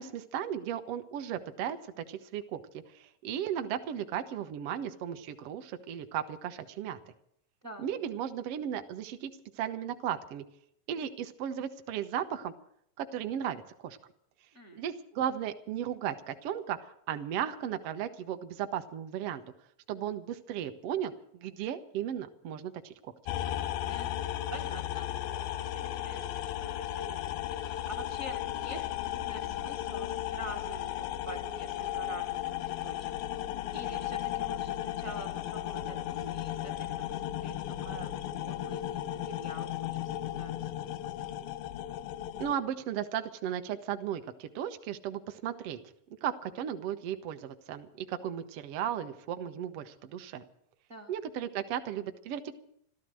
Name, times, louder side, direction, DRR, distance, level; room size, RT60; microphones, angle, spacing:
voice 1, 0.0-2.6 2.9-7.0 7.8-10.4 10.9-12.5 13.0-14.0 14.7-19.4 19.9-23.1 42.4-45.8 46.2-50.4 51.1-52.6, right 9 dB, 65° right, 7 dB, 1.6 m, -35 dB
sound 1, 23.3-42.6, left 12 dB, 85° left, 2.5 m, -35 dB
voice 2, 23.9-32.4 32.7-33.1 33.7-37.5 37.8-41.0 41.2-41.4 50.9-51.1, right 1 dB, 35° right, 4 dB, 1.0 m, -47 dB
14.0 x 13.5 x 7.6 m, 0.71 s
omnidirectional pair, 3.9 m